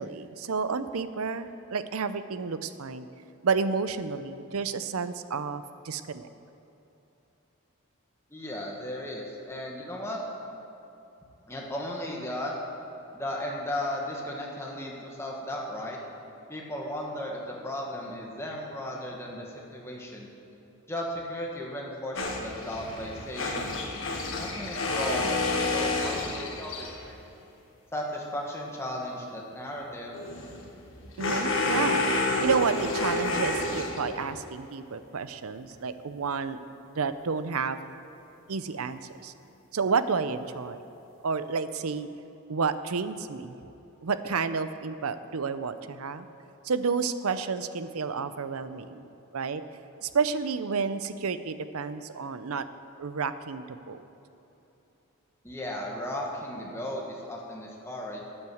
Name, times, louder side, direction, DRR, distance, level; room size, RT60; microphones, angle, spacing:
voice 1, 0.0-3.1 3.4-6.3 31.2-36.6 36.9-37.8 38.5-39.3 39.7-40.8 41.2-42.1 42.5-43.6 44.0-46.3 46.6-49.0 49.3-49.6 50.0-52.6 53.0-54.0, right 5 dB, 80° right, 12 dB, 0.6 m, -30 dB
voice 2, 8.3-10.2 11.5-12.5 13.1-16.0 16.5-20.3 20.9-23.7 24.3-25.3 25.7-27.2 27.9-30.2 55.4-58.2, left 1 dB, 10° left, -2 dB, 1.7 m, -35 dB
sound 1, 22.2-27.1 30.1-34.4, left 2 dB, 65° left, 1.6 m, -29 dB
12.0 x 8.8 x 7.8 m, 3.0 s
head